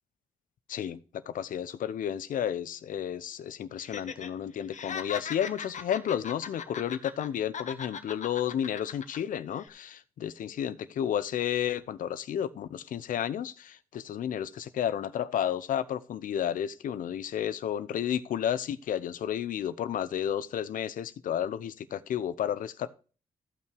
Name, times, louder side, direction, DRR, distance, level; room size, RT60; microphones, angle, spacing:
voice 1, 0.7-22.9, left 10 dB, 80° left, 0.8 m, -32 dB
Laughter, 3.8-4.3 4.6-7.3 7.5-9.2 9.5-9.7, left 7 dB, 65° left, 1.2 m, -39 dB
14.5 x 5.9 x 4.6 m
cardioid pair, 70°, 14 cm